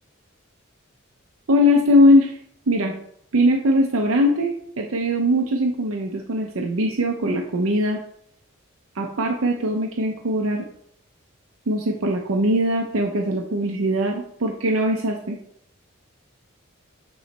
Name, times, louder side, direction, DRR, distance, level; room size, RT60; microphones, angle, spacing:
voice 1, 1.5-2.4 2.7-2.9 3.3-8.0 8.9-10.7 11.7-15.4, equal, 75° right, 1 dB, 0.7 m, -20 dB
8.7 x 3.2 x 4.1 m, 0.70 s
head